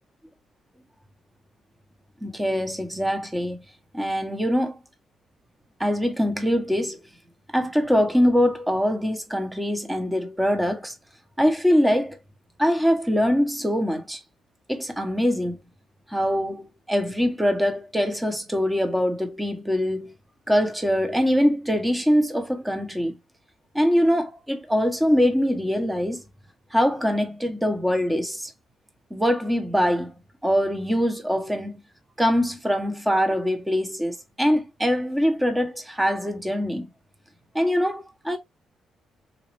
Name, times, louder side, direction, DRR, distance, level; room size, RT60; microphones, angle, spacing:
voice 1, 2.2-3.6 3.9-4.8 5.8-7.0 7.5-10.9 11.4-12.2 12.6-14.2 14.7-15.6 16.1-20.1 20.5-23.1 23.7-26.2 26.7-28.5 29.1-30.1 30.4-31.8 32.2-36.9 37.5-38.4, equal, 5° right, 1.1 m, -23 dB
4.0 x 2.7 x 3.2 m
cardioid pair, 90°, 0 cm